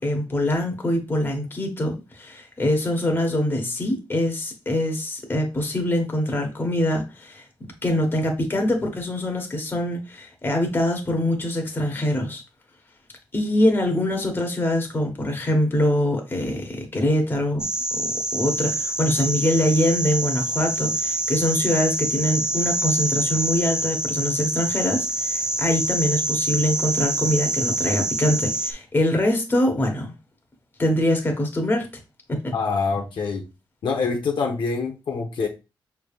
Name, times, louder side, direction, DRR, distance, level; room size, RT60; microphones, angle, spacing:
voice 1, 0.0-7.4 7.8-12.4 13.3-17.6 18.3-30.1 30.8-31.9 32.4-32.5, left 1 dB, 25° left, 1.1 m, -24 dB
sound 1, 17.6-28.7, right 1 dB, 10° right, 0.4 m, -26 dB
voice 2, 32.5-33.4 33.8-35.5, left 4 dB, 65° left, 0.8 m, -25 dB
6.0 x 3.4 x 2.4 m
wide cardioid pair, 150°, 9 cm